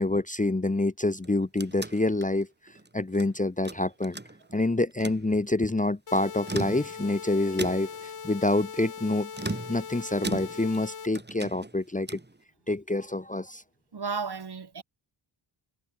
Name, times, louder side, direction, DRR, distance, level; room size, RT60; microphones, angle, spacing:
voice 1, 0.0-2.5 2.9-4.2 4.5-12.2 12.7-13.6, left 2 dB, 15° left, 1.2 m, -27 dB
sound 1, 1.1-3.3 3.6-4.6 4.9-5.3 6.3-7.1 7.6-8.1 9.3-10.9 11.1-12.4, right 2 dB, 20° right, 6.9 m, -37 dB
sound 2, 6.1-11.1, left 6 dB, 90° left, 5.4 m, -40 dB
voice 2, 13.9-14.8, right 5 dB, 50° right, 3.2 m, -34 dB
wide cardioid pair, 120°, 49 cm